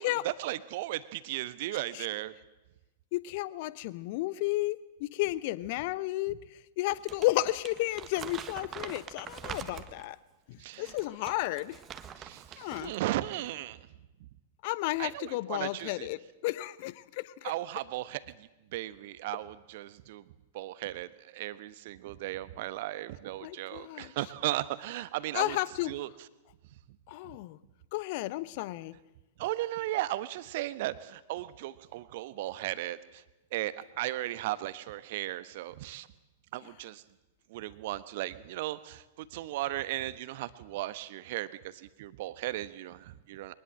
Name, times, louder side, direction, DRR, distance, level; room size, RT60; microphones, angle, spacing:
voice 1, 0.0-2.3 10.6-10.9 12.2-13.8 15.0-16.1 17.4-20.3 20.5-25.6 25.8-26.1 29.4-33.2 33.5-36.1 36.5-37.0 37.5-43.5, right 16 dB, 50° right, 15 dB, 1.2 m, -36 dB
voice 2, 3.1-6.4 6.8-10.2 10.5-11.8 12.6-12.9 14.6-17.5 23.4-24.1 25.3-25.9 27.1-27.6 27.9-29.0, left 18 dB, 45° left, 18 dB, 1.0 m, -32 dB
Crumpling crinkling, 6.9-10.1 10.7-13.0 13.3-13.5, right 8 dB, 25° right, 1.5 m, -44 dB
23.5 x 20.0 x 7.7 m, 1.0 s
figure-of-eight pair, 100°, 0 cm